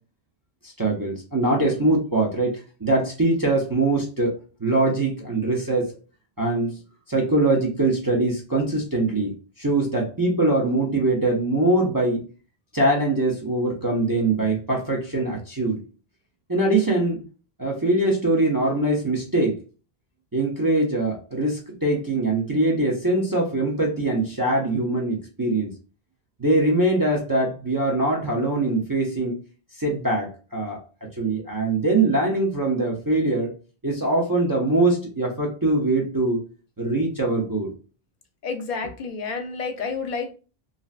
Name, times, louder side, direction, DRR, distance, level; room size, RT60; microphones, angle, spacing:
voice 1, 0.6-5.9 6.4-6.8 7.1-9.3 9.6-12.2 12.7-15.8 16.5-17.2 17.6-19.6 20.3-25.7 26.4-29.4 29.8-30.8 31.2-33.5 33.8-36.4 36.8-37.7, right 2 dB, 30° right, -2 dB, 0.5 m, -22 dB
voice 2, 38.4-40.4, left 4 dB, 55° left, 5 dB, 0.7 m, -30 dB
3.2 x 2.7 x 2.4 m, 0.35 s
omnidirectional pair, 1.0 m